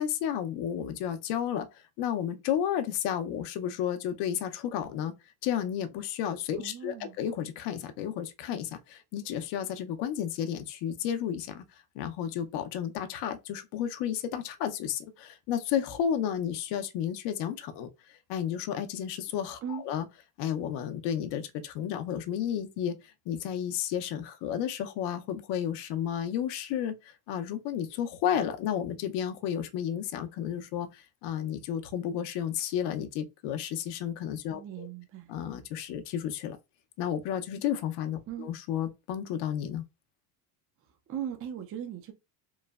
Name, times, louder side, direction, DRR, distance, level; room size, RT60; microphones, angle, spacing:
voice 1, 0.0-1.7 2.0-5.1 5.4-11.6 12.0-20.1 20.4-23.0 23.3-34.9 35.3-36.6 37.0-39.8, left 9 dB, 65° left, 0.6 m, -32 dB
voice 2, 6.6-7.2 19.6-19.8 34.5-35.3 38.3-38.5 41.1-42.1, right 9 dB, 30° right, 0.5 m, -38 dB
3.1 x 2.0 x 2.3 m
supercardioid pair, 105°, 45 cm